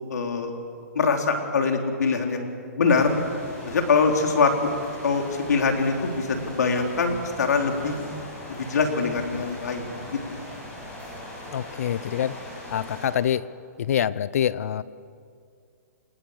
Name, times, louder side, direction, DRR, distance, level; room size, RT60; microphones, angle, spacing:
voice 1, 0.1-0.5 1.0-2.5 2.8-3.1 3.7-4.7 5.0-7.9 8.5-10.2, left 4 dB, 80° left, 4 dB, 3.6 m, -23 dB
sound 1, 2.9-13.1, left 1 dB, 15° left, 6.8 m, -40 dB
voice 2, 11.5-12.3 12.7-13.4 13.9-14.8, left 10 dB, 60° left, 19 dB, 0.8 m, -25 dB
27.5 x 20.0 x 6.6 m, 2.3 s
hypercardioid pair, 155°, 9 cm